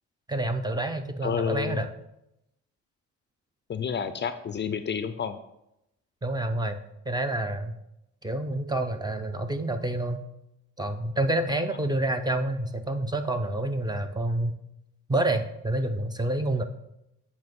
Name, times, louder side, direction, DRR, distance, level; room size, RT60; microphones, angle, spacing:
voice 1, 0.3-1.9 6.2-6.8 7.1-7.7 8.2-10.2 10.8-14.5 15.1-16.6, right 1 dB, 15° right, 7 dB, 0.5 m, -28 dB
voice 2, 1.2-1.8 3.7-5.4, left 7 dB, 35° left, 10 dB, 0.5 m, -30 dB
8.0 x 2.9 x 5.3 m, 0.84 s
cardioid pair, 90°, 30 cm